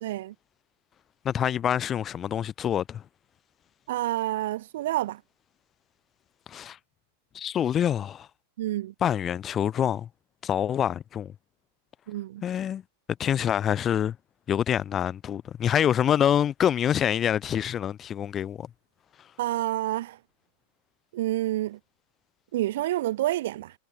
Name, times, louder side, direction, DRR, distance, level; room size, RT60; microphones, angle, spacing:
voice 1, 0.0-0.3 3.9-5.2 8.6-8.9 12.1-12.4 19.4-20.2 21.1-21.8 22.5-23.7, right 15 dB, 55° right, 0.4 m, -28 dB
voice 2, 1.2-3.0 6.5-6.8 7.3-8.3 9.0-10.1 10.4-11.3 12.4-12.8 13.2-14.2 14.5-18.7, left 9 dB, 25° left, 0.5 m, -26 dB
figure-of-eight pair, 90°, 0 cm